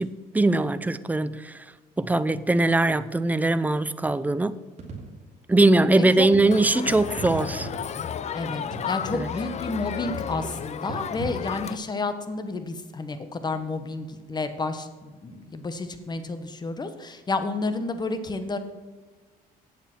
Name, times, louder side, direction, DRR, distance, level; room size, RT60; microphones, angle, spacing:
voice 1, 0.0-1.6 2.0-4.5 5.5-7.7 9.1-9.3, right 2 dB, 10° right, 0.5 m, -21 dB
sound 1, 4.8-5.3 6.3-6.6 7.1-8.2 8.7-9.2 10.1-10.5 10.9-11.5, right 4 dB, 45° right, 3.0 m, -38 dB
voice 2, 6.0-6.3 8.3-18.6, left 3 dB, 25° left, 1.1 m, -31 dB
Crowd, 6.5-11.8, left 8 dB, 40° left, 0.6 m, -33 dB
8.8 x 7.4 x 6.1 m
cardioid pair, 110°, 17 cm